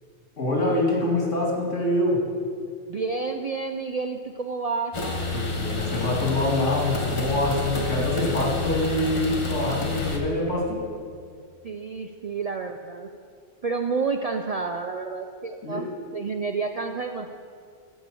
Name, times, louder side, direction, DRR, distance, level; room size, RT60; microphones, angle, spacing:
voice 1, 0.4-2.2 5.3-10.8 15.6-15.9, left 1 dB, 85° left, -3 dB, 2.7 m, -25 dB
voice 2, 2.9-5.0 11.6-13.1 13.6-15.9 16.1-17.3, right 4 dB, 60° right, 5 dB, 0.4 m, -29 dB
sound 1, 4.9-10.2, left 3 dB, 25° left, 1.1 m, -29 dB
14.0 x 5.3 x 7.5 m, 2.2 s
omnidirectional pair, 1.2 m